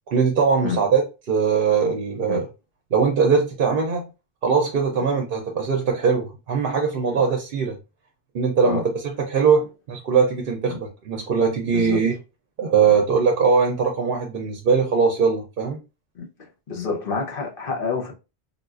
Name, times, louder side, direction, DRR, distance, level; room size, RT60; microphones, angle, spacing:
voice 1, 0.1-1.0 1.3-2.5 2.9-4.1 4.4-7.8 8.3-12.1 12.6-15.8, right 5 dB, 60° right, 0.7 m, -21 dB
voice 2, 16.7-18.1, left 5 dB, 60° left, 1.0 m, -27 dB
3.8 x 2.3 x 2.4 m
omnidirectional pair, 1.1 m